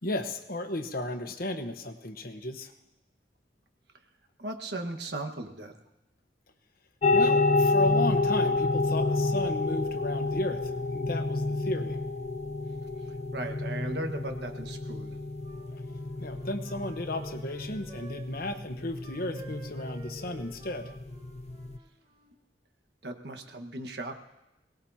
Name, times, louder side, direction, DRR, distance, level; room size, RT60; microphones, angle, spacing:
voice 1, 0.0-2.7 7.1-12.0 16.2-20.9, left 1 dB, 55° left, 7 dB, 1.2 m, -34 dB
voice 2, 4.4-5.7 13.3-15.2 23.0-24.2, right 2 dB, 70° right, 5 dB, 1.6 m, -37 dB
sound 1, 7.0-21.8, left 3 dB, 40° left, 0.5 m, -29 dB
Wind instrument woodwind instrument, 15.4-18.5 18.9-22.4, right 2 dB, 40° right, 3.0 m, -51 dB
22.5 x 18.5 x 2.9 m, 0.95 s
head